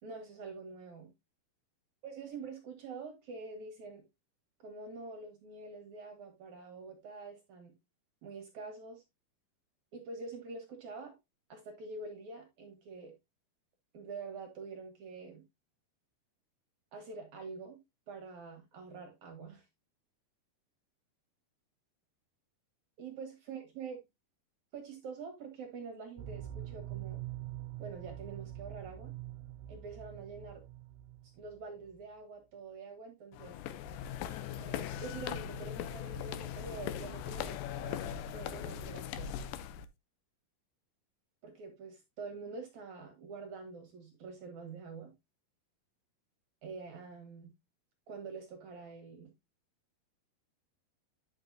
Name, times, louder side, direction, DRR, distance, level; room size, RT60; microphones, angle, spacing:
voice 1, 0.0-1.1 2.0-4.0 4.6-7.7 8.2-9.0 9.9-11.1 11.5-13.1 13.9-15.4 16.9-17.8 18.1-19.7 23.0-24.0 24.7-27.2 27.8-29.1 29.7-30.6 31.2-33.6 34.5-39.3 41.4-45.1 46.6-47.5 48.1-49.3, right 4 dB, 60° right, 2.2 m, -46 dB
sound 1, 26.2-31.6 31.9-32.0, right 13 dB, 85° right, 2.7 m, -44 dB
sound 2, 33.3-39.9, left 9 dB, 85° left, 1.9 m, -40 dB
9.7 x 6.5 x 2.6 m
omnidirectional pair, 4.6 m